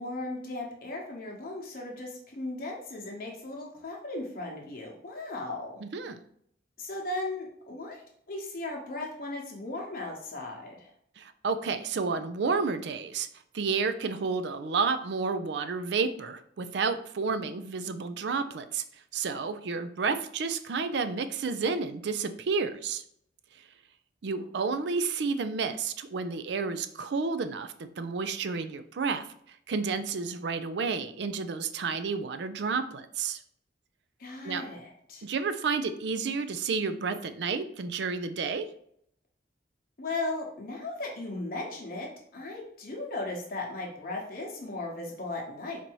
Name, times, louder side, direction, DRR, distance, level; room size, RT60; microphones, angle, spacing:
voice 1, 0.0-5.8 6.8-10.9 34.2-35.2 40.0-45.8, left 2 dB, 50° left, -1 dB, 0.9 m, -37 dB
voice 2, 5.8-6.2 11.2-13.3 13.5-18.8 19.1-23.0 24.2-33.4 34.4-34.6 35.2-38.7, right 4 dB, 65° right, 11 dB, 0.4 m, -31 dB
4.4 x 2.7 x 4.5 m, 0.68 s
head